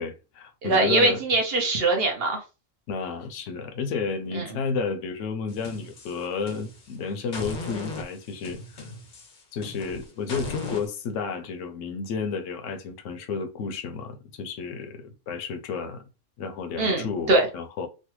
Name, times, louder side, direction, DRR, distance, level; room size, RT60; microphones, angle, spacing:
voice 1, 0.0-1.2 2.9-8.8 9.5-16.0 16.4-17.9, left 5 dB, 75° left, 0.9 m, -32 dB
voice 2, 0.6-2.4 4.3-4.5 16.8-17.5, right 2 dB, 55° right, 0.9 m, -22 dB
sound 1, 5.5-6.9 7.3-10.9, left 2 dB, 50° left, 0.6 m, -38 dB
3.2 x 2.2 x 3.0 m
omnidirectional pair, 1.3 m